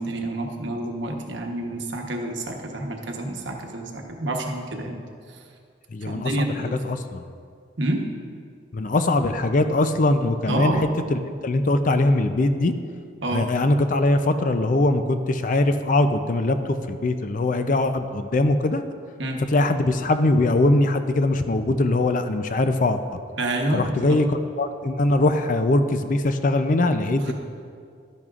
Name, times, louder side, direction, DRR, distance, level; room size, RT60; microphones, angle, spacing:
voice 1, 0.0-5.0 6.1-6.7 7.8-8.0 10.5-10.8 13.2-13.4 19.2-19.4 23.4-24.2 27.2-27.3, right 1 dB, 65° right, 2 dB, 1.1 m, -28 dB
voice 2, 5.9-7.2 8.7-12.7 13.3-18.8 19.5-23.0 23.7-27.3, left 2 dB, 40° left, 9 dB, 0.4 m, -21 dB
12.0 x 10.5 x 2.5 m, 2.2 s
head